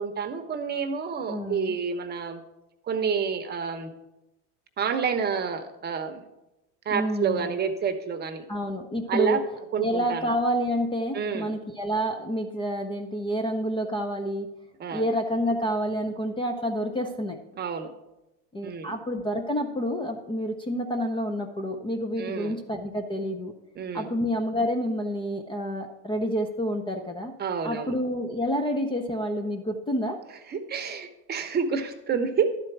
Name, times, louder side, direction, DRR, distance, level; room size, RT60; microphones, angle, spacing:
voice 1, 0.0-2.4 2.9-3.9 4.8-6.2 6.9-8.5 9.1-9.4 9.7-10.3 11.1-11.6 14.8-15.1 17.6-17.9 18.6-18.9 22.2-22.6 23.8-24.1 27.4-27.9 30.5-32.5, right 6 dB, 25° right, 7 dB, 0.9 m, -29 dB
voice 2, 1.3-1.8 6.9-7.5 8.5-9.4 9.8-14.5 14.9-17.4 18.5-23.5 23.9-27.3 27.6-30.2, equal, 15° left, 5 dB, 0.6 m, -28 dB
11.5 x 4.4 x 6.0 m, 0.96 s
supercardioid pair, 120°, 37 cm